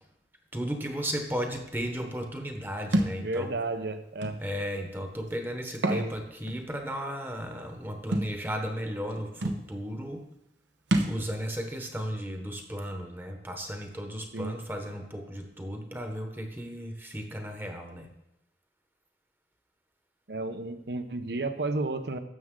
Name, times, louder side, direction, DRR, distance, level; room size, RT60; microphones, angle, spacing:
voice 1, 0.5-3.6 4.4-10.3 11.1-18.1, equal, 10° right, 4 dB, 1.0 m, -35 dB
Thump thud, 2.9-3.2 4.2-4.4 5.7-6.1 6.5-6.6 8.1-8.3 9.1-9.2 9.4-9.6 10.9-11.2, right 1 dB, 80° right, 1.0 m, -26 dB
voice 2, 3.2-4.4 5.8-6.1 14.3-14.5 20.3-22.2, right 2 dB, 60° right, 10 dB, 0.8 m, -32 dB
12.5 x 7.5 x 3.7 m, 0.83 s
head